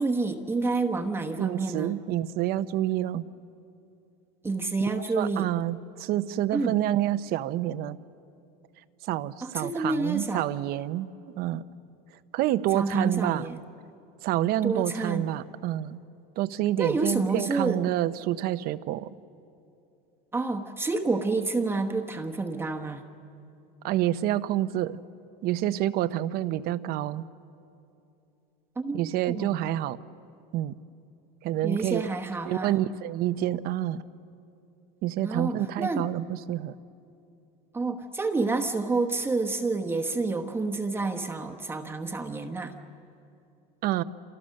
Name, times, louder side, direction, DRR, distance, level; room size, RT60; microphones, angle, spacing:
voice 1, 0.0-1.9 4.4-5.5 6.5-6.7 9.4-10.4 12.7-13.6 14.6-15.3 16.8-17.8 20.3-23.0 28.8-29.6 31.6-32.7 35.2-36.1 37.7-42.7, right 3 dB, 10° right, 3 dB, 1.1 m, -29 dB
voice 2, 1.4-3.2 5.1-8.0 9.1-11.1 11.4-11.6 12.3-13.5 14.2-16.0 16.4-19.1 23.8-25.0 25.4-27.2 28.9-30.0 30.5-30.7 31.4-32.1 32.5-34.0 35.0-36.7 43.8-44.0, right 13 dB, 45° right, 14 dB, 0.8 m, -28 dB
29.0 x 27.5 x 6.6 m, 2.7 s
supercardioid pair, 150°, 21 cm